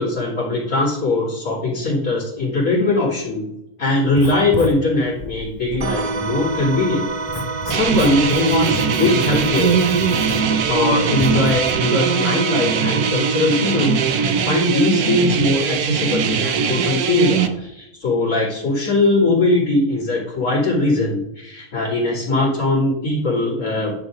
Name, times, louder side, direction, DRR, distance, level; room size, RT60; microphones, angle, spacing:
voice 1, 0.0-3.5 3.8-7.1 7.6-9.8 10.7-23.9, left 2 dB, 75° left, -11 dB, 3.3 m, -20 dB
Writing, 4.0-11.7, left 2 dB, 20° left, 1.0 m, -32 dB
sound 1, 5.8-15.2, right 4 dB, 55° right, 0.3 m, -28 dB
sound 2, 7.7-17.5, right 6 dB, 85° right, 1.3 m, -21 dB
10.5 x 4.1 x 4.9 m, 0.83 s
omnidirectional pair, 1.5 m